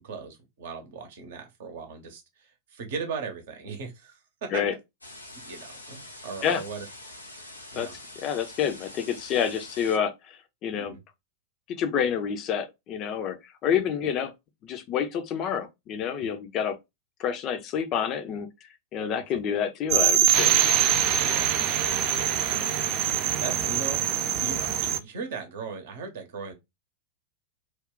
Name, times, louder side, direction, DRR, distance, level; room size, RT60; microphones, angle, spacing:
voice 1, 0.0-4.6 5.4-6.9 7.7-7.9 10.8-11.0 14.0-14.1 19.1-19.4 21.1-26.5, right 5 dB, 55° right, 0.8 m, -39 dB
sound 1, 5.0-10.0, left 1 dB, 85° left, 0.9 m, -45 dB
voice 2, 8.2-11.0 11.7-14.3 14.6-16.8 17.2-18.5 18.9-20.6, left 8 dB, 35° left, 0.5 m, -28 dB
sound 2, 19.9-25.0, right 10 dB, 40° right, 0.3 m, -24 dB
2.4 x 2.2 x 3.6 m
figure-of-eight pair, 90°, 0 cm